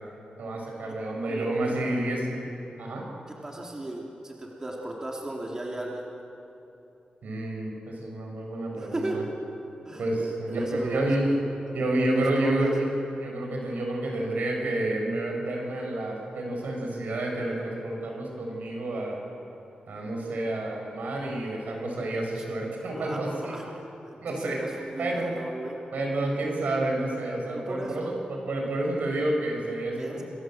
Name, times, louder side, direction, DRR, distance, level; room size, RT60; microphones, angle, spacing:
voice 1, 0.4-2.4 2.8-3.1 7.2-9.2 10.0-11.4 11.7-19.2 19.9-23.6 24.2-24.6 25.0-25.3 25.9-30.2, right 1 dB, 75° right, 0 dB, 6.8 m, -29 dB
voice 2, 1.3-1.9 3.3-6.1 8.8-9.2 9.8-11.1 11.7-12.7 22.4-22.5 22.9-25.8 27.5-28.2 29.9-30.2, right 1 dB, 20° right, -2 dB, 2.8 m, -36 dB
28.0 x 22.5 x 7.8 m, 3.0 s
wide cardioid pair, 140°, 3 cm